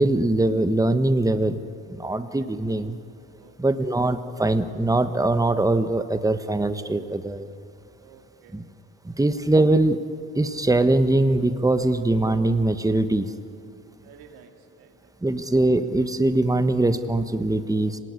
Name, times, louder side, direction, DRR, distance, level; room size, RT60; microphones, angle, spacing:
voice 1, 0.0-1.6 1.9-3.0 3.6-7.5 8.5-8.6 9.0-10.0 10.3-13.3 15.2-18.0, right 2 dB, 10° right, 10 dB, 1.3 m, -22 dB
voice 2, 2.0-2.5 3.4-3.5 8.0-8.6 9.1-9.3 14.0-15.1, right 7 dB, 90° right, 5 dB, 2.3 m, -52 dB
25.5 x 18.5 x 9.8 m, 2.8 s
supercardioid pair, 65°, 36 cm